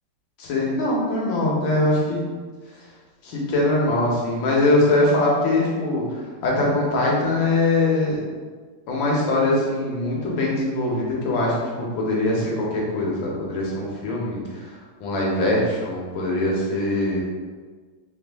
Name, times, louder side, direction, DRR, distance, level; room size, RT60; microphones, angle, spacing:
voice 1, 0.4-2.2 3.2-8.2 8.9-14.7 15.0-17.2, left 2 dB, 70° left, -3 dB, 1.5 m, -22 dB
4.1 x 2.4 x 3.3 m, 1.5 s
omnidirectional pair, 2.3 m